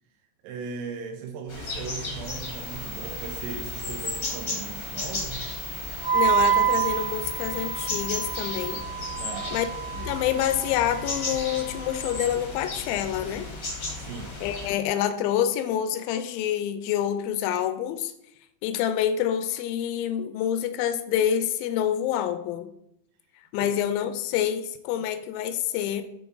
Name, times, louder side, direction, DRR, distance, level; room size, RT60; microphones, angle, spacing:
voice 1, 0.4-5.5 9.2-9.6 9.9-10.2 14.0-14.4 23.6-23.8 25.0-25.1, right 5 dB, 85° right, 2 dB, 2.8 m, -38 dB
sound 1, 1.5-14.7, left 2 dB, 70° left, 0.8 m, -35 dB
sound 2, 2.2-8.8, left 1 dB, 70° right, 1.7 m, -38 dB
Wind instrument woodwind instrument, 6.0-12.2, right 9 dB, 30° right, 0.8 m, -28 dB
voice 2, 6.1-8.9 9.5-9.7 10.1-13.5 14.4-18.1 18.6-22.7 23.5-26.0, left 10 dB, 85° left, 10 dB, 2.1 m, -27 dB
9.2 x 3.5 x 3.9 m, 0.78 s
omnidirectional pair, 4.7 m